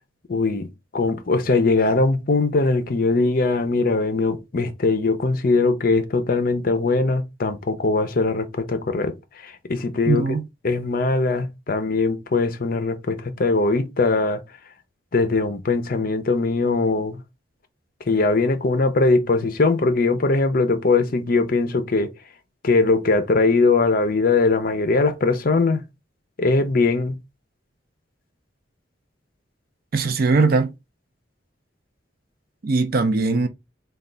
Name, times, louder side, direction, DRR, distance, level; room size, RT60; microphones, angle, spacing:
voice 1, 0.3-10.3 10.6-14.4 15.1-17.2 18.0-22.1 22.6-25.8 26.4-27.2, left 3 dB, 50° left, 0.6 m, -21 dB
voice 2, 10.1-10.4 29.9-30.7 32.6-33.5, right 4 dB, 50° right, 0.5 m, -20 dB
3.2 x 2.3 x 3.8 m
head